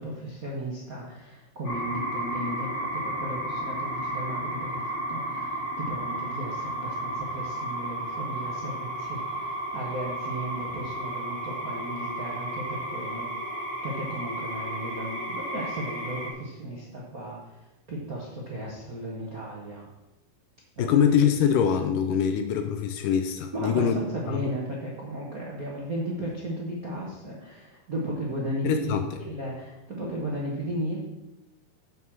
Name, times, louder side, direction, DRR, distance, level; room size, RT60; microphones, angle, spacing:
voice 1, 0.0-13.3 13.8-19.9 20.8-21.0 23.5-28.9 29.2-31.0, right 1 dB, 55° right, -4 dB, 0.9 m, -35 dB
sound 1, 1.6-16.3, right 1 dB, 50° left, 1.8 m, -33 dB
voice 2, 20.8-24.0 24.3-24.5 28.6-29.2, left 8 dB, 75° left, 7 dB, 2.1 m, -24 dB
7.7 x 7.0 x 6.2 m, 0.98 s
omnidirectional pair, 4.2 m